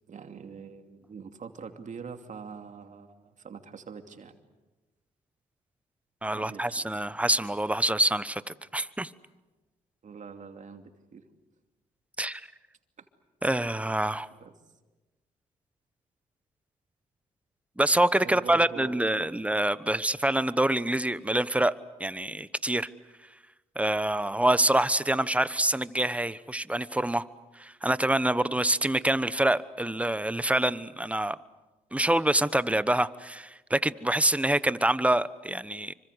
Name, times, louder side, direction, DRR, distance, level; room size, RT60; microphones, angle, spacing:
voice 1, 0.1-4.4 6.3-7.1 10.0-11.2 13.0-13.1 14.3-14.5 18.2-19.5 19.9-20.0, right 6 dB, 55° right, 6 dB, 2.7 m, -44 dB
voice 2, 6.2-9.1 12.2-12.5 13.4-14.3 17.8-21.7 22.0-22.9 23.7-27.3 27.6-31.4 31.9-35.9, right 1 dB, 10° right, 16 dB, 1.1 m, -26 dB
27.0 x 25.0 x 8.1 m, 1.2 s
supercardioid pair, 60°, 15 cm